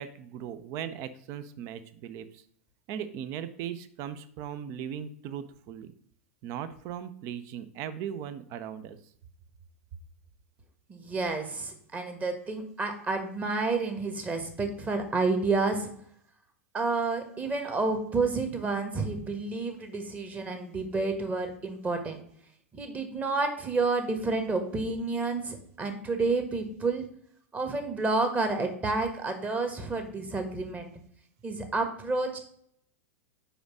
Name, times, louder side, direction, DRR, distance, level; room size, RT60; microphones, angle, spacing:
voice 1, 0.0-2.2 2.9-5.9 6.4-9.0, right 9 dB, 45° right, 13 dB, 0.7 m, -38 dB
voice 2, 10.9-15.9 16.7-22.2 22.7-27.1 27.5-30.9 31.4-32.4, right 3 dB, 20° right, 6 dB, 1.4 m, -30 dB
5.1 x 5.0 x 6.1 m, 0.65 s
figure-of-eight pair, 95°, 7 cm